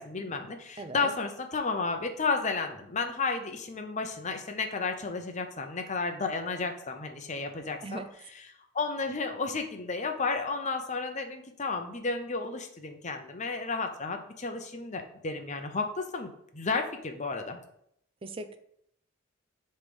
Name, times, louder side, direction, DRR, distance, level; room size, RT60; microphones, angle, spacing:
voice 1, 0.0-8.0 8.7-17.6, left 4 dB, 35° left, 5 dB, 0.8 m, -32 dB
voice 2, 0.8-1.1 7.8-8.1 18.2-18.6, right 2 dB, 25° right, 10 dB, 0.5 m, -38 dB
7.2 x 3.3 x 5.3 m, 0.71 s
head